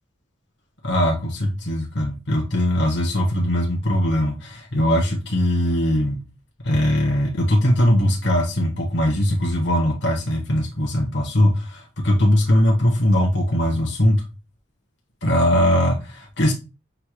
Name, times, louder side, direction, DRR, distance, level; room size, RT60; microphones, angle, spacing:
voice 1, 0.8-6.2 6.6-14.3 15.2-16.5, equal, 65° left, 1.3 m, -20 dB
6.6 x 2.3 x 3.1 m
head